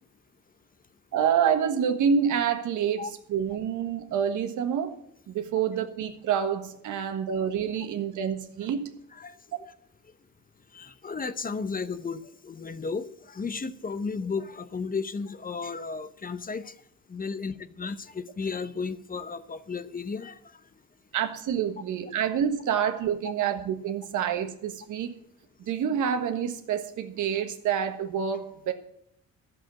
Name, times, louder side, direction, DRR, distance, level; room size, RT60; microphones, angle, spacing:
voice 1, 1.1-5.0 5.3-8.9 21.1-25.1 25.7-28.7, right 8 dB, 80° right, 7 dB, 1.5 m, -27 dB
voice 2, 10.7-16.7 17.1-20.6, left 4 dB, 30° left, 13 dB, 0.8 m, -34 dB
11.5 x 7.8 x 7.5 m, 0.74 s
cardioid pair, 90°, 30 cm